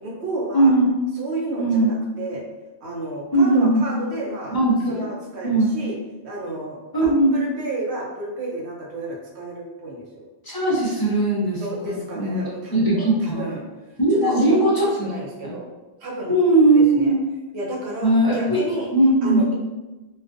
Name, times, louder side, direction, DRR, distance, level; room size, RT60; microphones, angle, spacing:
voice 1, 0.0-0.7 1.2-2.4 2.8-4.6 4.9-5.9 6.2-10.2 11.6-13.6 14.1-15.7 16.0-16.3 16.8-17.1 17.5-18.9 19.2-19.5, right 2 dB, 75° right, -2 dB, 0.9 m, -32 dB
voice 2, 0.5-0.9 1.6-1.9 3.3-3.8 4.5-5.0 5.4-5.7 6.9-7.3 10.4-12.4 12.7-13.4 14.0-15.1 15.4-15.5 16.3-17.2 18.0-18.6 18.9-19.4, right 2 dB, 35° left, -6 dB, 0.4 m, -19 dB
2.4 x 2.3 x 2.5 m, 1.1 s
omnidirectional pair, 1.1 m